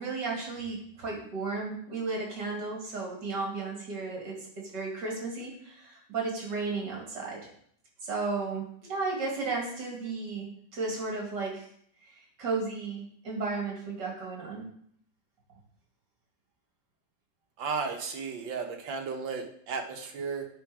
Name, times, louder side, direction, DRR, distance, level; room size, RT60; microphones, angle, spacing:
voice 1, 0.0-7.4 8.0-11.7 12.1-14.7, right 3 dB, 70° right, -1 dB, 2.8 m, -34 dB
voice 2, 17.6-20.5, right 5 dB, 85° right, 4 dB, 1.8 m, -34 dB
9.5 x 3.9 x 4.9 m, 0.64 s
omnidirectional pair, 2.0 m